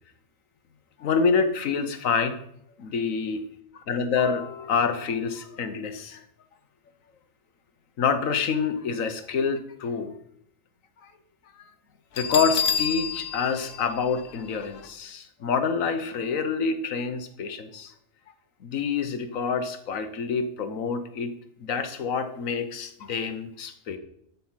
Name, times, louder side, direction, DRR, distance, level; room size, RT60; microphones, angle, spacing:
voice 1, 1.0-2.3 2.8-3.5 3.7-6.2 8.0-10.2 11.0-11.1 11.5-11.7 12.1-17.9 18.6-21.3 21.6-24.0, left 5 dB, 85° left, 10 dB, 1.4 m, -27 dB
Bell, 12.2-14.9, left 7 dB, 60° left, 1.0 m, -29 dB
12.5 x 5.3 x 5.7 m, 0.73 s
omnidirectional pair, 1.4 m